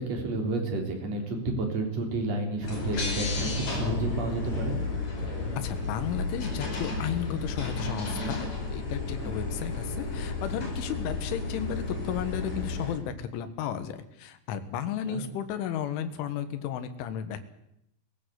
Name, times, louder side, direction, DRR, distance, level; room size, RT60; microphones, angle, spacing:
voice 1, 0.0-4.8 9.2-9.3 15.1-15.2, right 2 dB, 35° right, 2 dB, 4.1 m, -31 dB
sound 1, 2.6-12.9, left 3 dB, 40° left, 6.0 m, -32 dB
voice 2, 5.6-17.5, left 9 dB, 80° left, 10 dB, 3.9 m, -34 dB
19.5 x 16.5 x 8.1 m, 0.78 s
omnidirectional pair, 5.5 m